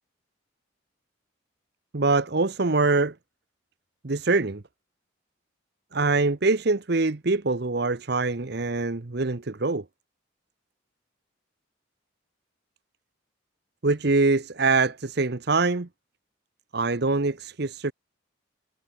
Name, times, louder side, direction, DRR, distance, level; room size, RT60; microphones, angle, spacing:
voice 1, 1.9-3.1 4.0-4.6 5.9-9.8 13.8-15.9 16.7-17.9, right 3 dB, 55° right, 0.9 m, -24 dB
head